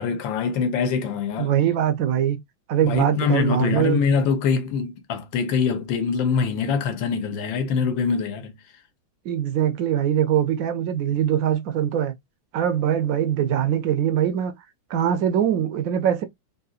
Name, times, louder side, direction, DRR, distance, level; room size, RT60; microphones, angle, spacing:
voice 1, 0.0-1.5 2.8-8.5, left 6 dB, 80° left, 1.5 m, -24 dB
voice 2, 1.4-2.4 2.7-4.0 9.3-12.1 12.5-14.5 14.9-16.2, right 10 dB, 75° right, 0.7 m, -22 dB
3.8 x 2.8 x 2.4 m
omnidirectional pair, 2.1 m